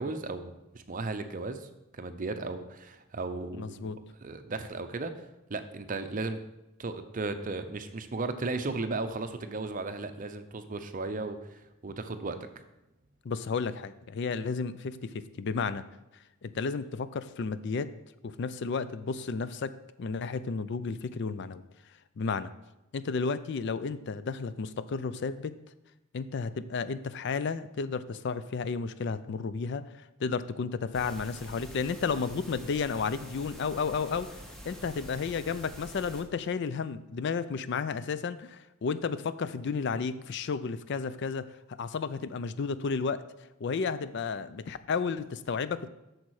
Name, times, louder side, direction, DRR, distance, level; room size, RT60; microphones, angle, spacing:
voice 1, 0.0-1.7 1.9-3.9 4.2-6.4 6.8-12.5, right 3 dB, 40° right, 9 dB, 0.6 m, -35 dB
voice 2, 3.6-4.0 13.2-15.8 16.4-17.9 18.2-21.6 22.2-22.5 22.9-25.6 26.1-29.9 30.2-34.4 34.7-41.5 41.8-43.2 43.6-45.9, left 5 dB, 55° left, 14 dB, 0.4 m, -32 dB
sound 1, 30.9-36.2, equal, 5° left, 1.0 m, -46 dB
8.3 x 6.5 x 4.8 m, 0.95 s
head